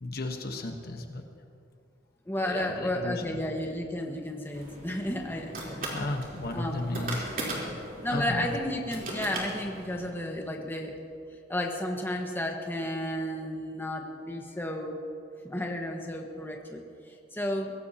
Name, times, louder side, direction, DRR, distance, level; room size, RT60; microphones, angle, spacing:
voice 1, 0.0-1.2 2.4-3.5 5.9-7.8 8.1-8.5, left 2 dB, 55° left, 4 dB, 1.2 m, -34 dB
voice 2, 2.3-5.9 6.5-6.9 8.0-10.9 11.5-15.0 15.4-17.7, left 1 dB, 10° left, 1 dB, 1.4 m, -33 dB
sound 1, 4.5-10.1, right 1 dB, 50° right, 3.6 m, -38 dB
23.0 x 17.0 x 2.8 m, 2.4 s
head